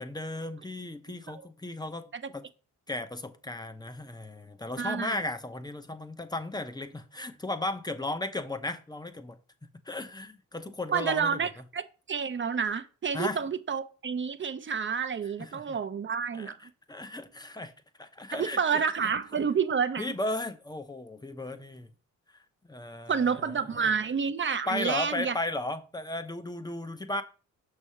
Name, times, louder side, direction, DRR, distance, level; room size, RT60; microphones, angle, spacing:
voice 1, 0.0-2.5 2.9-9.4 9.9-11.4 13.1-13.4 15.4-15.8 16.4-16.5 16.9-17.7 18.0-18.6 19.0-19.1 20.0-21.9 22.7-23.9 24.7-27.2, left 2 dB, 10° left, 0.8 m, -35 dB
voice 2, 4.8-5.2 10.9-16.7 18.3-20.1 23.1-25.4, right 6 dB, 35° right, 0.7 m, -29 dB
6.1 x 3.3 x 5.6 m
supercardioid pair, 65°, 34 cm